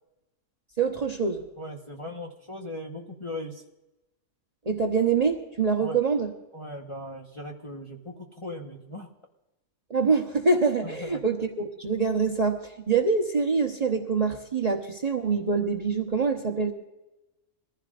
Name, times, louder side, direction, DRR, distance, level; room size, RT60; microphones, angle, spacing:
voice 1, 0.8-1.4 4.7-6.3 9.9-16.7, right 4 dB, 30° right, 2 dB, 1.0 m, -25 dB
voice 2, 1.6-3.6 5.8-6.0 6.5-9.1 10.8-11.2, left 1 dB, 20° left, -1 dB, 1.1 m, -38 dB
23.0 x 15.5 x 2.5 m, 0.99 s
omnidirectional pair, 1.5 m